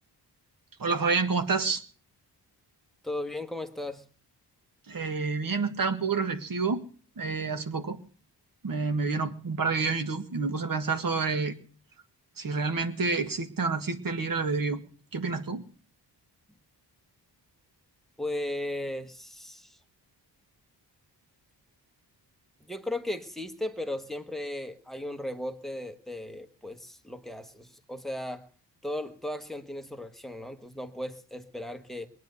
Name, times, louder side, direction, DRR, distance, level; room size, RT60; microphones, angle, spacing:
voice 1, 0.8-1.8 4.9-6.8 7.2-8.0 8.6-11.5 12.4-14.8 15.1-15.6, right 4 dB, 50° right, 8 dB, 1.7 m, -28 dB
voice 2, 3.0-4.1 18.2-19.8 22.7-28.5 28.8-32.1, left 1 dB, ahead, 9 dB, 1.2 m, -36 dB
22.0 x 9.4 x 6.6 m, 0.43 s
wide cardioid pair, 145°, 42 cm